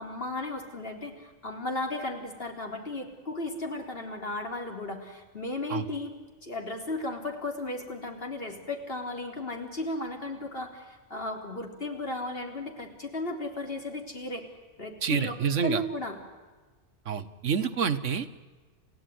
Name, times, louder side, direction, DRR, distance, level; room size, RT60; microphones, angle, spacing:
voice 1, 0.0-6.1 6.4-14.4 14.8-16.2, left 2 dB, 50° left, 2 dB, 3.9 m, -35 dB
voice 2, 15.0-15.8 17.1-18.3, right 7 dB, 85° right, 11 dB, 1.6 m, -27 dB
29.5 x 16.0 x 9.4 m, 1.4 s
omnidirectional pair, 1.2 m